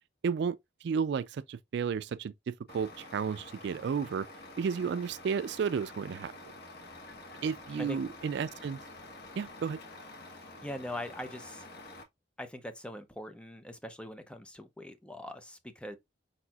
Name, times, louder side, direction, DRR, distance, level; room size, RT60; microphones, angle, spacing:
voice 1, 0.2-4.3 4.6-6.3 7.4-8.8 9.4-9.8, right 6 dB, 65° right, 0.3 m, -32 dB
Truck, 2.7-12.0, left 2 dB, 60° left, 1.0 m, -48 dB
voice 2, 10.6-11.6 12.4-16.0, left 1 dB, 5° left, 0.6 m, -42 dB
4.8 x 4.3 x 2.3 m
head